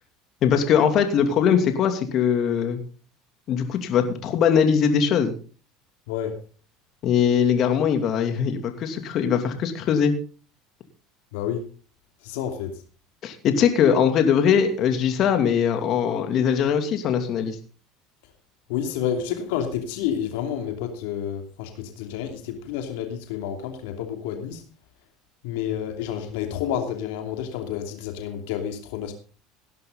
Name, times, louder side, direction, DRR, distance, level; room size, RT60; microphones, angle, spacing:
voice 1, 0.4-2.8 3.5-5.3 7.0-10.1 13.2-17.6, left 7 dB, 55° left, 6 dB, 2.8 m, -21 dB
voice 2, 6.1-6.4 11.3-11.6 12.2-12.8 18.7-24.6 25.4-29.1, left 9 dB, 80° left, 5 dB, 2.7 m, -29 dB
18.0 x 11.0 x 4.0 m, 0.38 s
supercardioid pair, 90°, 0 cm